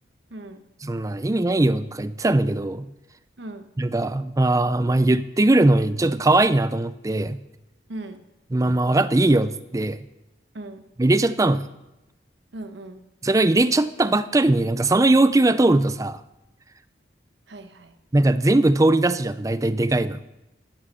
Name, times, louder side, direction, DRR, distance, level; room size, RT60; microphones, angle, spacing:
voice 1, 0.3-0.6 3.4-3.6 7.9-8.2 10.5-10.8 12.5-13.0 17.5-18.0, right 2 dB, 70° right, 8 dB, 1.1 m, -38 dB
voice 2, 0.8-2.9 3.8-7.4 8.5-10.0 11.0-11.7 13.2-16.2 18.1-20.2, right 2 dB, 20° right, 14 dB, 0.4 m, -20 dB
12.0 x 11.5 x 5.6 m, 0.95 s
head